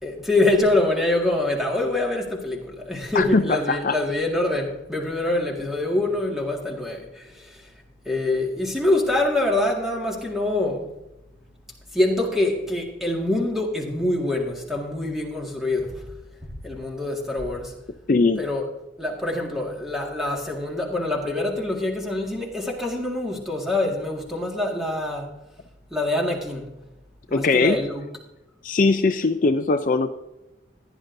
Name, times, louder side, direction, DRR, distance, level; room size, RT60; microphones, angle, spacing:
voice 1, 0.0-7.7 8.0-10.9 11.9-16.1 16.4-17.8 18.4-18.6 19.0-25.3 25.9-26.7 27.3-28.0, left 2 dB, ahead, -1 dB, 1.9 m, -25 dB
voice 2, 3.1-4.0 18.1-18.4 27.3-27.8 28.6-30.1, left 3 dB, 45° left, 8 dB, 0.4 m, -20 dB
16.0 x 10.5 x 2.7 m, 0.96 s
head